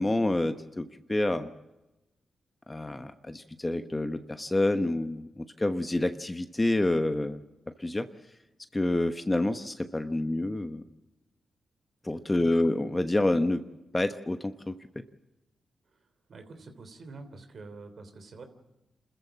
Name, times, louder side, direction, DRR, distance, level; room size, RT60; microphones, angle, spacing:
voice 1, 0.0-1.5 2.7-7.4 7.8-8.1 8.7-10.8 12.0-13.6 13.9-15.0, left 2 dB, 25° left, 8 dB, 1.1 m, -28 dB
voice 2, 12.4-12.7 16.3-18.4, right 3 dB, 65° right, 7 dB, 3.2 m, -46 dB
27.0 x 14.0 x 7.4 m, 0.99 s
supercardioid pair, 45°, 0 cm